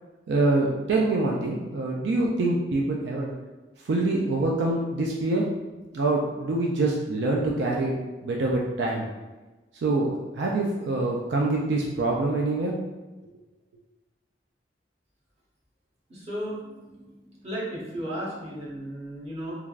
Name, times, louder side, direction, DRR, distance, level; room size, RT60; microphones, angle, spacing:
voice 1, 0.3-3.3 3.8-5.5 5.9-7.9 8.2-9.1 9.7-12.8, right 2 dB, 75° right, -2 dB, 0.4 m, -25 dB
voice 2, 16.1-19.6, equal, 35° right, -6 dB, 0.8 m, -35 dB
3.2 x 2.3 x 2.4 m, 1.2 s
head